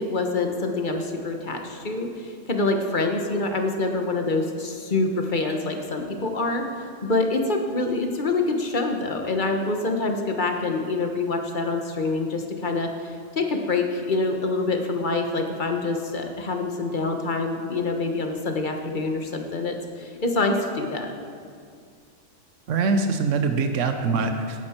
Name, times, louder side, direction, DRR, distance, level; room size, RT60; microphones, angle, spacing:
voice 1, 0.0-6.6 7.0-21.1, left 3 dB, 40° left, 4 dB, 1.3 m, -26 dB
voice 2, 22.7-24.6, right 4 dB, 85° right, 6 dB, 1.2 m, -23 dB
17.0 x 9.7 x 4.5 m, 2.2 s
omnidirectional pair, 1.3 m